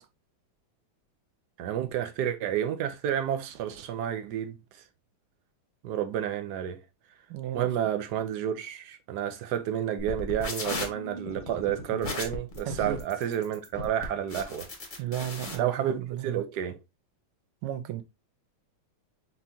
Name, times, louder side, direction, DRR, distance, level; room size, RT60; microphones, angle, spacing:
voice 1, 1.6-4.6 5.8-6.8 7.5-14.7 15.6-16.8, right 10 dB, 65° right, 1.1 m, -30 dB
voice 2, 7.3-7.7 12.8-13.0 15.0-16.4 17.6-18.0, right 12 dB, 80° right, 1.5 m, -34 dB
sound 1, 10.0-15.5, left 2 dB, 30° left, 1.0 m, -36 dB
4.3 x 4.3 x 2.7 m
omnidirectional pair, 2.3 m